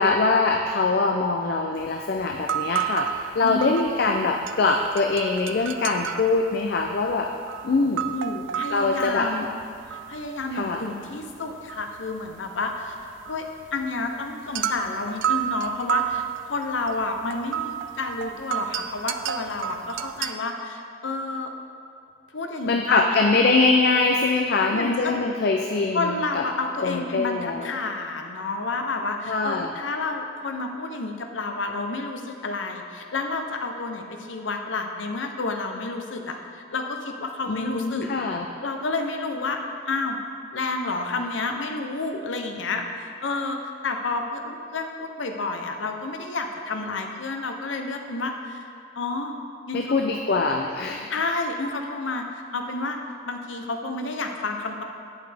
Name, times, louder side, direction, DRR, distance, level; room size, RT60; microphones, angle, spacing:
voice 1, 0.0-7.3 7.6-8.1 8.7-9.3 10.5-10.8 22.7-26.4 26.8-27.7 29.3-29.7 37.5-38.5 49.7-51.1, left 3 dB, 60° left, 2 dB, 0.4 m, -23 dB
sound 1, 1.8-1.9 2.2-4.2 4.4-10.8 11.0-20.3, right 9 dB, 75° right, 0.4 m, -31 dB
voice 2, 3.4-3.8 8.1-9.4 9.9-12.9 13.3-13.5 13.7-21.5 22.3-23.2 24.7-25.1 25.9-38.1 38.6-39.6 39.9-40.2 40.5-48.7 49.0-49.4 49.7-50.0 51.1-53.0 53.2-54.8, left 3 dB, 90° left, 4 dB, 0.8 m, -30 dB
8.7 x 8.1 x 3.4 m, 2.3 s
head